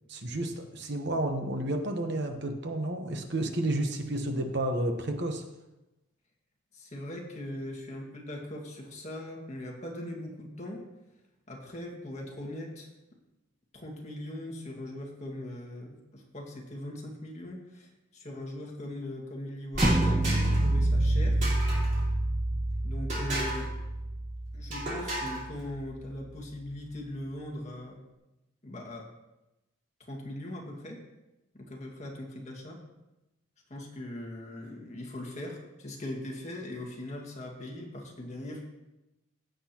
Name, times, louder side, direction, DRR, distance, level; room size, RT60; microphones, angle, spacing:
voice 1, 0.1-5.4, right 1 dB, 55° right, 5 dB, 1.0 m, -31 dB
voice 2, 6.7-10.8 11.5-12.9 13.7-21.4 22.8-23.7 24.5-28.0 28.6-29.1 30.1-31.0 31.5-32.8 33.7-38.6, left 1 dB, 30° left, -1 dB, 1.9 m, -40 dB
sound 1, 19.7-20.7 21.4-22.0 23.1-23.7 24.7-25.4, right 1 dB, 35° right, 3.9 m, -33 dB
sound 2, 19.8-25.8, right 1 dB, 10° right, 0.4 m, -28 dB
16.0 x 7.8 x 2.9 m, 0.97 s
head